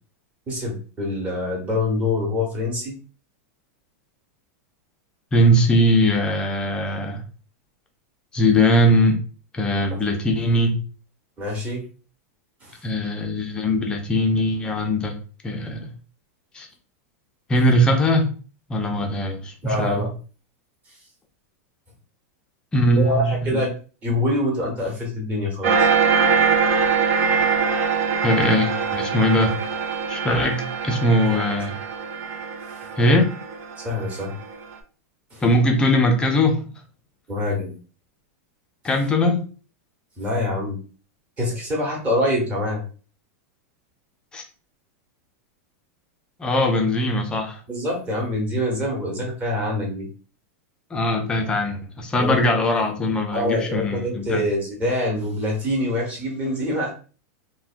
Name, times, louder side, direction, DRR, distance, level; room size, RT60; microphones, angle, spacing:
voice 1, 0.5-3.0 10.1-10.2 11.4-11.9 12.6-12.8 19.6-20.1 22.9-23.7 24.0-25.9 31.3-31.4 33.8-34.3 35.3-35.4 37.3-37.7 40.2-40.8 41.4-42.8 47.7-50.1 52.2-52.4 53.3-56.9, left 1 dB, 15° right, 0.9 m, -25 dB
voice 2, 5.3-7.2 8.3-9.2 9.5-10.8 12.8-15.2 15.4-15.9 16.5-16.7 17.5-18.3 18.7-20.1 22.7-23.6 28.2-29.5 30.1-31.7 33.0-33.3 35.4-36.6 38.8-39.4 44.3-44.4 46.4-47.6 50.9-54.5, equal, 10° left, 0.4 m, -20 dB
sound 1, 25.6-34.6, right 5 dB, 55° right, 0.5 m, -23 dB
3.5 x 2.1 x 2.4 m
supercardioid pair, 160°, 8 cm